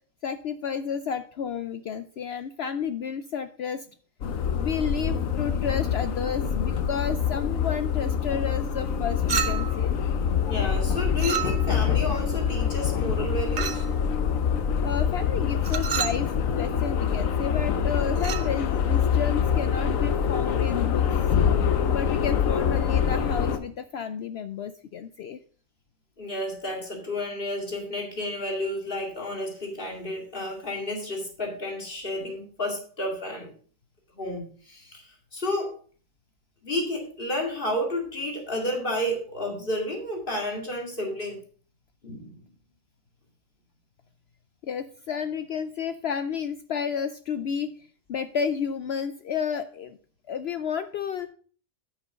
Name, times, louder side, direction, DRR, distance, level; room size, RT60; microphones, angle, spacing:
voice 1, 0.2-3.9 4.6-10.0 14.8-21.1 21.9-25.4 44.6-50.0 50.3-51.3, left 7 dB, 65° left, 11 dB, 0.7 m, -31 dB
sound 1, 4.2-23.6, left 7 dB, 85° left, 1.3 m, -25 dB
Chink clink, 9.3-9.9 11.2-11.9 13.6-13.9 15.6-16.3 18.2-18.5, right 7 dB, 50° right, 0.8 m, -30 dB
voice 2, 10.4-13.9 26.2-33.5 34.2-35.7 36.6-41.4 42.0-42.4, left 1 dB, 40° left, 1 dB, 2.5 m, -31 dB
9.5 x 6.3 x 5.0 m, 0.43 s
omnidirectional pair, 1.4 m